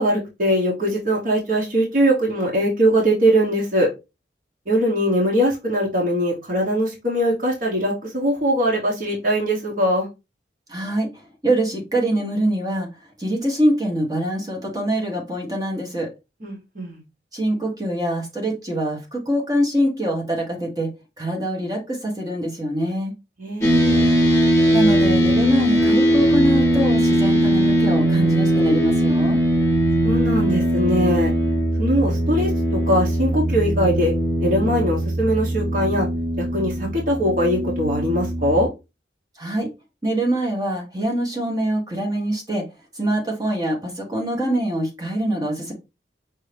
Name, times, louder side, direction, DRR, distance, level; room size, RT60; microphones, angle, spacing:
voice 1, 0.0-3.9 4.7-10.1 16.4-17.0 23.4-24.2 30.0-31.3 31.8-34.1 34.4-36.1 36.4-38.7, equal, 50° right, -3 dB, 1.2 m, -21 dB
voice 2, 10.7-11.1 11.4-12.9 13.2-16.1 17.3-20.9 21.2-23.1 24.7-29.4 39.4-39.7 40.0-42.6 42.9-45.7, right 1 dB, 20° right, -1 dB, 1.1 m, -24 dB
sound 1, 23.6-38.7, right 1 dB, 15° left, 1.3 m, -20 dB
5.4 x 2.7 x 3.3 m, 0.25 s
head